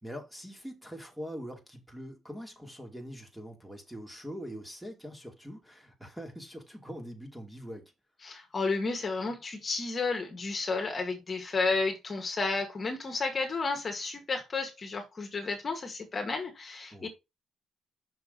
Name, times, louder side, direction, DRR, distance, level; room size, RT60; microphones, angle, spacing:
voice 1, 0.0-7.9 16.9-17.1, equal, 5° right, 2.8 m, -43 dB
voice 2, 8.2-17.1, left 3 dB, 35° left, 2.0 m, -32 dB
6.6 x 6.2 x 4.1 m
cardioid pair, 90°, 0 cm